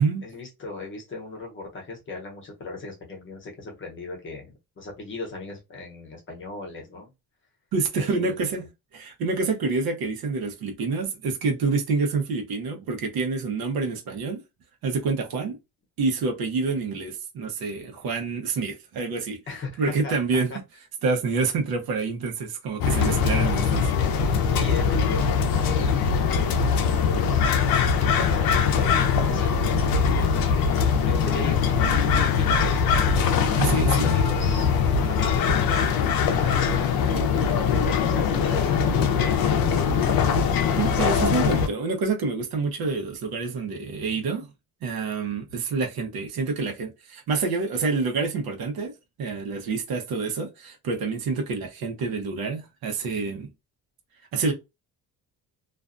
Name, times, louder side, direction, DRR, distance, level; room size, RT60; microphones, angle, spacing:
voice 1, 0.2-7.1 7.9-8.7 19.5-20.1 20.5-20.6 24.4-26.5 26.8-27.5 27.9-30.7 31.1-31.7 32.1-33.1 33.7-36.9 37.7-38.8 39.2-40.2, left 3 dB, 30° left, 0.9 m, -38 dB
voice 2, 7.7-8.6 8.9-14.4 14.8-15.6 16.0-19.4 19.8-20.5 21.0-23.9 33.6-34.1 40.6-44.5 44.8-48.9 49.2-53.5 54.3-54.5, right 4 dB, 70° right, 0.9 m, -27 dB
sound 1, 22.8-41.7, left 6 dB, 65° left, 0.6 m, -22 dB
2.5 x 2.2 x 2.5 m
cardioid pair, 175°, 37 cm